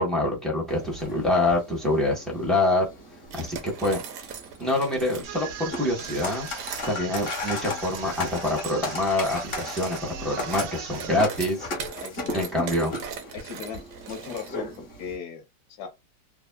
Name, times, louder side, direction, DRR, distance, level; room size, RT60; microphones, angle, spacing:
voice 1, 0.0-2.9 3.3-4.0 4.6-6.5 6.9-11.7 12.3-12.9, left 1 dB, ahead, 0.6 m, -25 dB
sound 1, 0.7-15.2, left 2 dB, 40° left, 0.9 m, -37 dB
sound 2, 3.3-5.3 5.9-14.8, right 7 dB, 70° right, 1.1 m, -40 dB
sound 3, 5.2-11.3, right 7 dB, 85° right, 1.5 m, -40 dB
voice 2, 12.0-12.5 13.3-15.4 15.8-15.9, left 7 dB, 60° left, 1.2 m, -38 dB
3.4 x 2.1 x 2.2 m
omnidirectional pair, 2.1 m